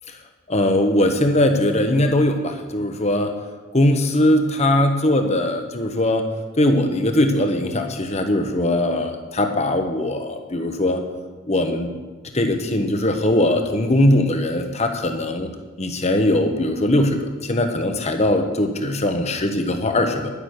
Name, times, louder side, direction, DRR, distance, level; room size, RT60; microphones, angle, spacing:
voice 1, 0.5-3.4 3.7-6.3 6.6-11.0 11.5-11.9 12.3-15.5 15.8-20.3, left 1 dB, 30° left, 6 dB, 1.1 m, -20 dB
11.0 x 9.9 x 6.5 m, 1.3 s
head